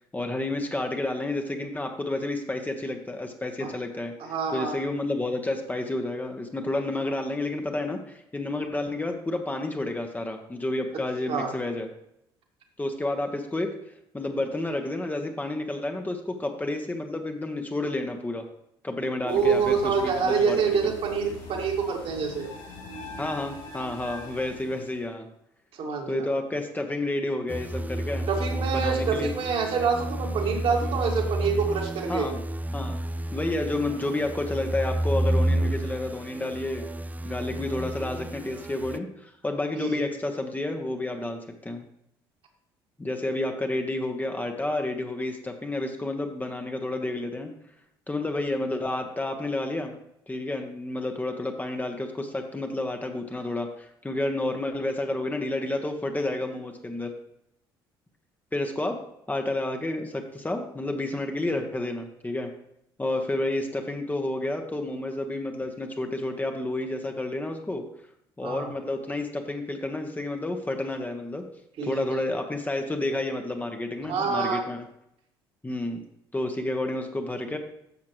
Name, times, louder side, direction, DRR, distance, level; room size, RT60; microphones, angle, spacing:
voice 1, 0.1-4.1 4.5-11.9 12.8-13.7 14.1-18.5 18.8-20.6 23.2-25.3 26.1-28.3 28.7-29.3 32.1-32.4 32.7-33.0 33.3-36.8 37.2-41.8 43.0-47.5 48.1-49.9 50.3-57.1 58.5-59.0 59.3-62.5 63.0-67.8 68.4-71.4 71.8-74.9 75.6-76.0 76.3-77.6, left 2 dB, 15° left, 4 dB, 1.1 m, -30 dB
voice 2, 4.2-4.8 11.3-11.5 19.2-22.5 25.8-26.3 28.3-32.3 39.7-40.0 68.4-68.7 71.8-72.2 74.1-74.6, right 5 dB, 50° right, 1 dB, 1.9 m, -26 dB
sound 1, 19.3-25.0, left 2 dB, 55° left, 2.7 m, -42 dB
sound 2, 27.5-39.0, right 1 dB, 15° right, 0.4 m, -30 dB
11.0 x 7.3 x 3.0 m, 0.78 s
figure-of-eight pair, 50°, 12 cm